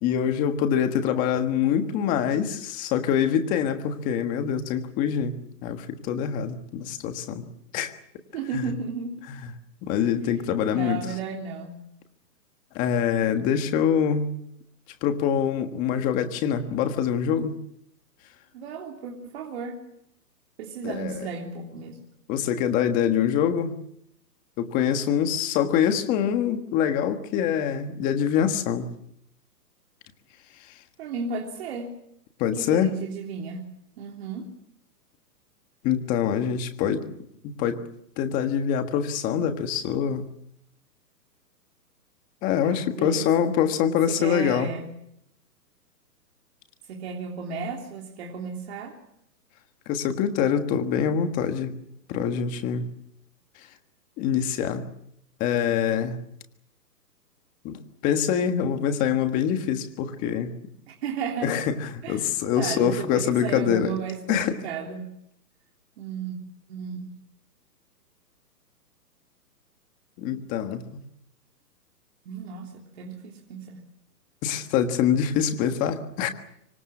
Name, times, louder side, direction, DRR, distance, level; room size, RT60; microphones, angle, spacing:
voice 1, 0.0-5.3 5.6-7.4 7.7-7.9 8.5-8.7 9.4-9.5 9.8-11.0 12.7-14.3 15.0-17.6 20.8-21.3 22.3-23.8 24.6-28.9 32.4-33.0 35.8-37.0 37.4-37.8 38.2-40.3 42.4-44.7 49.9-51.7 52.1-52.9 54.2-54.9 55.4-56.2 57.6-60.5 61.4-63.9 64.3-64.6 70.2-70.8 74.4-76.3, left 8 dB, 15° left, 7 dB, 1.5 m, -25 dB
voice 2, 8.3-9.2 10.6-11.8 18.5-19.8 20.6-22.0 31.0-31.9 32.6-33.7 34.0-34.5 42.6-43.3 44.1-45.0 46.9-49.0 60.9-61.7 62.0-62.3 62.5-65.1 66.0-66.4 66.7-67.1 72.2-73.9, right 5 dB, 40° right, 1 dB, 3.4 m, -34 dB
25.5 x 24.0 x 7.2 m, 0.75 s
hypercardioid pair, 160°, 49 cm